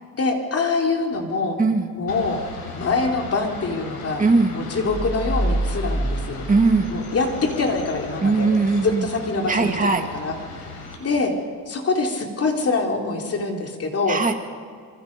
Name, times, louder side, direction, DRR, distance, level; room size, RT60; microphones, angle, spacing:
voice 1, 0.1-1.6 1.9-2.4 2.7-4.3 4.5-6.5 6.9-8.5 8.8-9.8 10.1-10.3 11.0-11.3 11.7-14.2, left 3 dB, 40° left, 2 dB, 3.4 m, -24 dB
voice 2, 1.6-1.9 4.2-4.6 6.5-6.9 8.2-9.1 9.5-10.1 14.1-14.3, right 3 dB, 20° right, 4 dB, 2.4 m, -19 dB
sound 1, 2.1-11.0, left 4 dB, 90° left, 5.1 m, -37 dB
sound 2, 4.9-7.5, right 1 dB, 20° left, 5.3 m, -26 dB
26.5 x 24.5 x 5.3 m, 2.1 s
cardioid pair, 115°, 36 cm